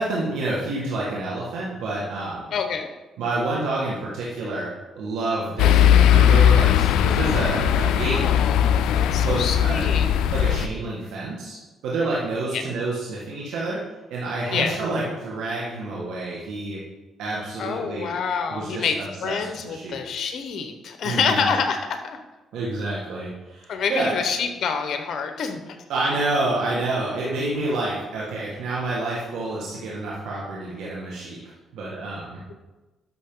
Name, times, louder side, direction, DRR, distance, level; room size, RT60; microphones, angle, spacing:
voice 1, 0.0-2.5 3.2-8.3 9.2-9.9 10.3-11.6 11.8-16.8 17.2-18.2 18.5-19.4 19.6-20.0 21.0-21.5 22.5-24.2 25.9-31.4 31.7-32.4, right 2 dB, 85° right, -5 dB, 1.8 m, -28 dB
voice 2, 2.5-2.9 8.1-10.1 12.5-12.6 14.5-14.7 17.6-22.2 23.7-25.8, left 6 dB, 65° left, 6 dB, 1.2 m, -27 dB
sound 1, 5.6-10.7, left 9 dB, 90° left, 0.4 m, -18 dB
11.5 x 6.4 x 3.9 m, 1.1 s
cardioid pair, 90°, 0 cm